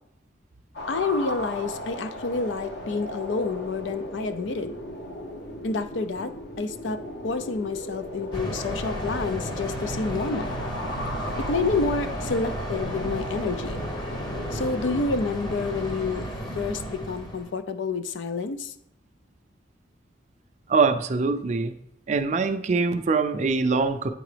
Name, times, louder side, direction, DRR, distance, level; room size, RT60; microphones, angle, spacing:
sound 1, 0.7-15.0, equal, 70° left, 1.0 m, -37 dB
voice 1, 0.9-4.7 5.6-10.6 11.5-13.8 14.5-16.2 16.6-18.7, left 3 dB, 85° left, 11 dB, 0.5 m, -29 dB
sound 2, 8.3-17.5, equal, 25° left, 0.8 m, -33 dB
voice 2, 20.7-21.7 22.1-24.1, right 4 dB, 40° right, 8 dB, 0.4 m, -23 dB
8.9 x 3.8 x 3.3 m, 0.80 s
head